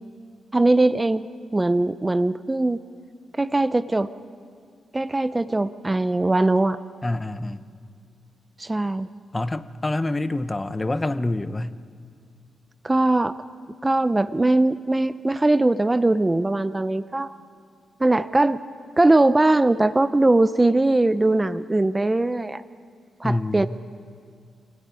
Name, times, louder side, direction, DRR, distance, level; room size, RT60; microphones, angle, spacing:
voice 1, 0.5-2.8 3.3-4.1 4.9-6.8 8.6-9.1 12.8-13.4 13.8-17.3 18.0-18.6 19.0-22.6 23.2-23.7, right 2 dB, 15° right, 13 dB, 0.6 m, -20 dB
voice 2, 7.0-7.6 9.3-11.7 23.2-23.7, left 2 dB, 15° left, 12 dB, 0.9 m, -26 dB
27.5 x 18.0 x 9.6 m, 2.2 s
cardioid pair, 115°, 0 cm